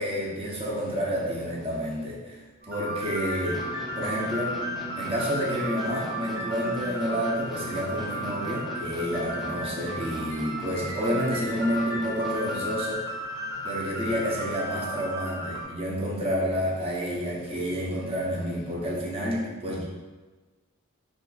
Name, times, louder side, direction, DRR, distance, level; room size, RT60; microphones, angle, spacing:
voice 1, 0.0-2.4 2.7-3.6 4.0-4.6 5.0-13.0 13.6-19.8, equal, 25° right, -4 dB, 0.7 m, -29 dB
sound 1, 0.5-2.2 2.6-2.7 3.1-5.8 6.2-6.3 6.7-8.6 9.1-9.2 9.6-11.9 13.2-15.1 16.5-18.9, left 3 dB, 85° left, 0.4 m, -48 dB
sound 2, 2.6-15.6, equal, 60° right, 1.4 m, -34 dB
sound 3, 3.5-12.9, right 1 dB, ahead, 0.3 m, -40 dB
2.7 x 2.5 x 3.9 m, 1.3 s
head